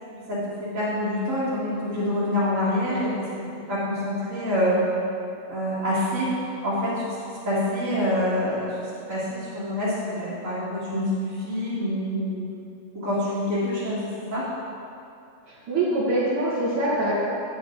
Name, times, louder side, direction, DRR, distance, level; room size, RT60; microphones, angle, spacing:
voice 1, 0.3-3.3 3.7-4.8 5.5-6.3 6.6-7.2 7.4-12.5 12.9-14.5, left 1 dB, 35° right, -12 dB, 1.4 m, -26 dB
voice 2, 15.5-17.1, right 2 dB, 60° right, -9 dB, 1.3 m, -24 dB
8.9 x 8.5 x 3.8 m, 2.6 s
omnidirectional pair, 4.2 m